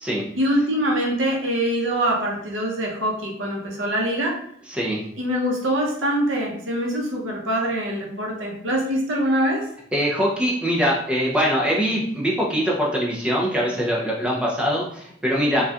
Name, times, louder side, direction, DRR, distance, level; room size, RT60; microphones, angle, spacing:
voice 1, 0.4-4.4 5.2-9.6, equal, 80° right, -1 dB, 0.8 m, -24 dB
voice 2, 4.7-5.0 9.9-15.6, equal, 5° right, -4 dB, 0.6 m, -22 dB
4.0 x 2.3 x 2.4 m, 0.70 s
head